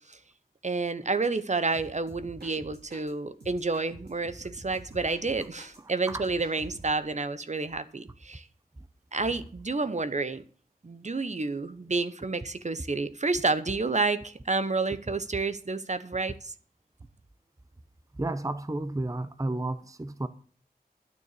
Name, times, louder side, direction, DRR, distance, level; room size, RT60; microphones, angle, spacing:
voice 1, 0.6-8.4 9.1-10.4 10.8-16.5, right 3 dB, 45° right, 1.0 m, -30 dB
sound 1, 1.7-3.1 3.4-5.8 6.1-7.1, right 1 dB, 85° right, 4.3 m, -48 dB
voice 2, 18.2-20.3, right 2 dB, 20° right, 0.7 m, -32 dB
11.5 x 6.8 x 8.3 m
wide cardioid pair, 70°, 16 cm